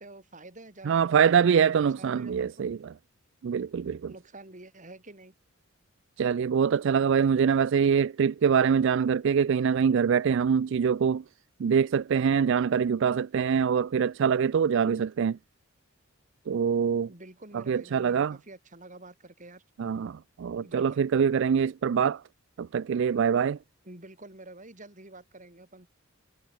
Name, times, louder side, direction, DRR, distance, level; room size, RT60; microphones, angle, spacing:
voice 1, 0.0-1.2 1.4-2.5 4.1-5.3 17.1-19.6 20.6-21.0 23.8-25.9, right 2 dB, 40° right, 4.8 m, -48 dB
voice 2, 0.9-2.8 3.4-4.1 6.2-11.2 11.6-15.4 16.5-17.1 17.7-18.3 19.8-22.2 22.6-23.6, right 7 dB, 60° right, 0.4 m, -24 dB
head